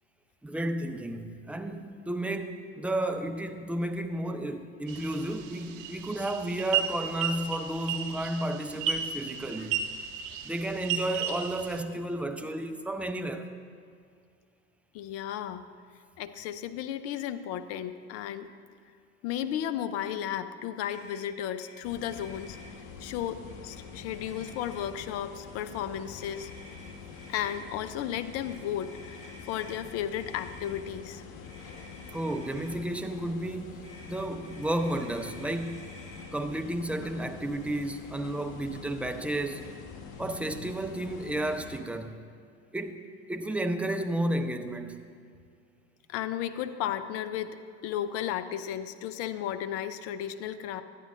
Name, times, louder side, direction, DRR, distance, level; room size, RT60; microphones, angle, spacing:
voice 1, 0.4-9.8 10.4-13.5 32.1-36.0 36.3-39.7 40.2-42.2 42.7-43.0 43.3-45.0, right 1 dB, 5° right, 0.4 m, -32 dB
sound 1, 4.9-11.8, right 8 dB, 55° right, 0.7 m, -34 dB
voice 2, 14.9-15.6 16.2-18.5 19.2-22.6 23.0-26.5 27.3-31.2 46.1-47.6 47.8-50.8, left 10 dB, 45° left, 0.5 m, -34 dB
Motor vehicle (road), 20.9-21.2 21.6-21.7 22.0-22.7 23.5-23.8 24.1-25.0 26.2-27.6 28.3-29.8 30.2-30.8 31.4-32.7 33.8-36.3, left 1 dB, 20° left, 2.3 m, -51 dB
sound 2, 21.8-41.8, left 5 dB, 60° left, 1.2 m, -46 dB
12.5 x 9.1 x 2.5 m
figure-of-eight pair, 75°, 35 cm